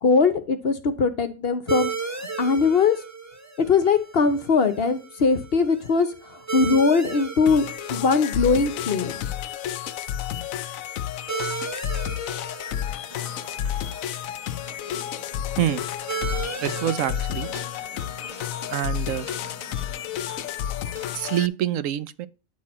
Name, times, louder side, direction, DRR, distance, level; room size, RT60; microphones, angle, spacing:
voice 1, 0.0-1.9 2.4-3.0 3.6-9.1, left 4 dB, 50° left, 0.8 m, -21 dB
sound 1, 1.7-20.8, right 5 dB, 15° right, 0.8 m, -37 dB
sound 2, 7.5-21.5, left 11 dB, 75° left, 1.0 m, -31 dB
sound 3, 12.7-21.1, right 1 dB, 40° right, 2.3 m, -47 dB
voice 2, 16.6-17.5 18.7-19.3 21.1-22.3, right 11 dB, 75° right, 1.0 m, -26 dB
9.4 x 4.3 x 4.2 m
omnidirectional pair, 1.4 m